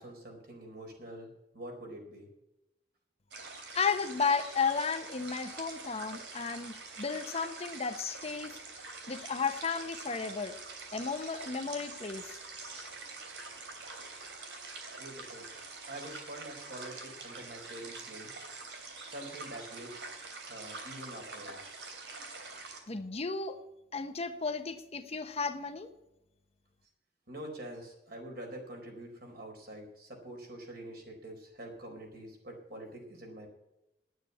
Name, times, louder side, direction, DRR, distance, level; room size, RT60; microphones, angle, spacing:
voice 1, 0.0-2.3 13.4-13.5 15.0-15.5 15.9-18.3 19.0-20.0 20.5-21.8 27.3-33.5, right 1 dB, 60° right, 2 dB, 4.4 m, -46 dB
sound 1, 3.3-22.8, right 3 dB, 85° right, 3.1 m, -45 dB
voice 2, 3.7-8.6 9.1-10.5 10.9-12.4 22.9-23.6 23.9-25.9, left 5 dB, 35° left, 8 dB, 0.9 m, -33 dB
10.0 x 9.3 x 8.4 m, 0.91 s
head